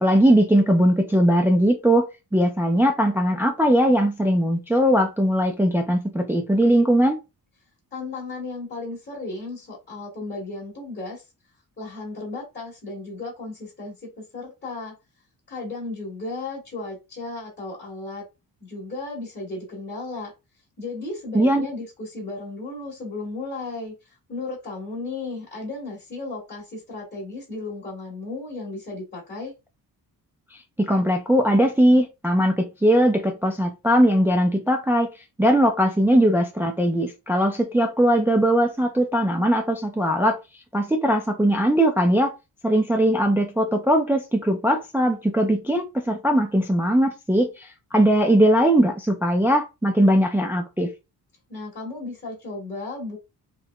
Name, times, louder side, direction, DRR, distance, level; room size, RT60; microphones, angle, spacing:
voice 1, 0.0-2.1 2.3-7.2 21.3-21.7 30.8-35.1 35.4-40.4 40.7-42.3 42.6-50.9, equal, 5° right, 0.3 m, -20 dB
voice 2, 7.9-11.2 11.8-14.9 15.5-18.2 18.6-20.3 20.8-29.5 51.5-53.2, left 3 dB, 30° left, 1.5 m, -34 dB
3.4 x 3.1 x 2.3 m
wide cardioid pair, 160°, 37 cm